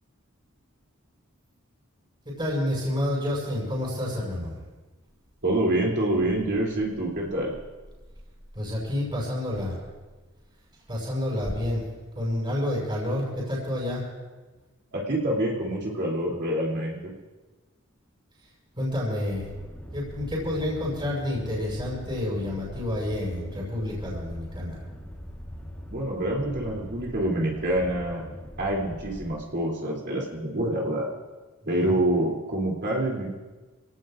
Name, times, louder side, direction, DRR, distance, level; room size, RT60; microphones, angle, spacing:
voice 1, 2.2-4.6 8.6-9.8 10.9-11.8 12.1-14.0 18.8-19.5 19.9-24.8 31.6-32.0, left 1 dB, 25° right, -7 dB, 6.2 m, -29 dB
voice 2, 5.4-7.5 14.9-17.1 25.9-28.2 28.6-31.1 31.7-33.3, right 1 dB, 55° right, -4 dB, 3.2 m, -26 dB
sound 1, 19.3-29.3, equal, 10° left, 3.7 m, -41 dB
27.5 x 18.0 x 2.6 m, 1.2 s
head